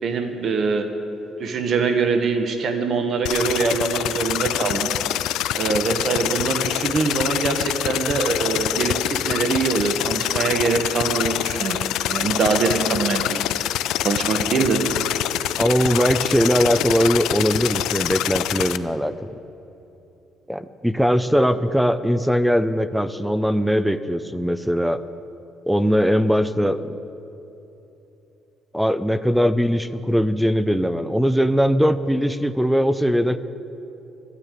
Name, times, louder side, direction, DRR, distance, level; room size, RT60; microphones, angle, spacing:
voice 1, 0.0-0.9 1.4-4.9 5.5-11.8 12.1-13.4 14.0-14.8, right 4 dB, 45° right, 6 dB, 1.2 m, -23 dB
sound 1, 3.3-18.8, left 13 dB, 80° left, 0.4 m, -25 dB
voice 2, 15.6-19.1 20.5-25.0 25.7-26.8 28.7-33.4, equal, ahead, 13 dB, 0.4 m, -20 dB
12.0 x 9.8 x 9.0 m, 3.0 s
cardioid pair, 145°, 0 cm